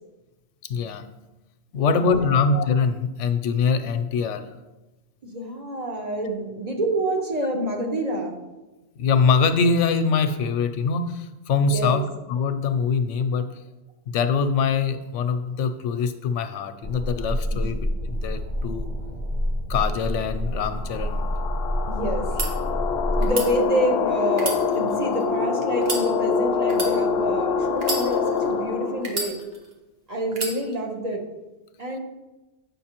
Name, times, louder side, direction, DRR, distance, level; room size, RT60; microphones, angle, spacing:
voice 1, 0.7-1.0 1.7-4.4 9.0-12.0 12.3-13.5 14.1-18.9 19.7-21.2, left 5 dB, 85° left, 9 dB, 0.9 m, -23 dB
voice 2, 1.8-2.4 5.2-8.3 11.7-12.0 17.5-17.6 21.9-22.3 23.2-29.4 30.1-31.2 31.8-32.0, right 1 dB, 40° right, 1 dB, 0.8 m, -27 dB
sound 1, 16.8-23.3, equal, 85° right, 1.8 m, -28 dB
sound 2, 20.7-29.1, left 5 dB, 60° left, 0.7 m, -25 dB
sound 3, 22.2-22.5 23.2-23.5 24.3-25.2 25.8-26.1 26.7-26.9 27.8-28.5 29.0-29.7 30.3-30.6, right 3 dB, 60° right, 1.2 m, -30 dB
8.1 x 5.7 x 2.9 m, 1.1 s
omnidirectional pair, 1.2 m